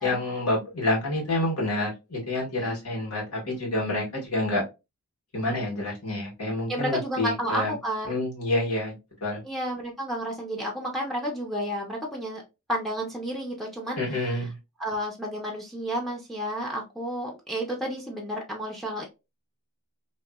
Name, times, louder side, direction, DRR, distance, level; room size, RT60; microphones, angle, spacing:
voice 1, 0.0-4.6 5.3-7.7 8.1-8.9 9.2-9.4 14.0-14.5, left 1 dB, 85° left, 1.6 m, -28 dB
voice 2, 6.7-8.3 9.4-12.4 12.7-14.5 14.8-19.0, equal, ahead, 0.6 m, -31 dB
2.9 x 2.7 x 2.2 m
head